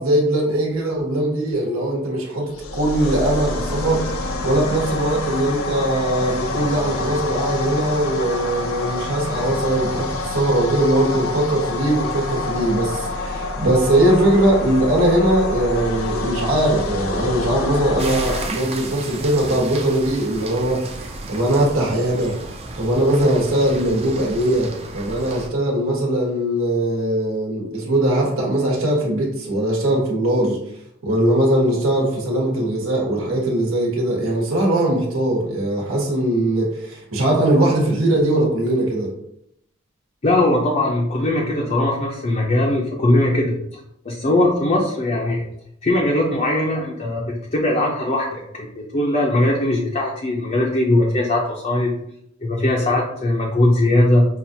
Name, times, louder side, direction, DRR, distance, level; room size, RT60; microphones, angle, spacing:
voice 1, 0.0-20.8 21.3-22.3 22.8-30.6 31.0-39.1, right 1 dB, 90° right, -2 dB, 1.2 m, -20 dB
sound 1, 2.5-18.5, left 2 dB, 90° left, 0.5 m, -27 dB
sound 2, 18.0-25.5, right 3 dB, 30° right, 0.5 m, -34 dB
voice 2, 40.2-43.8 44.0-45.5 45.8-47.2 47.5-51.9 52.4-54.3, left 1 dB, 35° left, -2 dB, 0.5 m, -20 dB
5.7 x 2.4 x 2.7 m, 0.76 s
head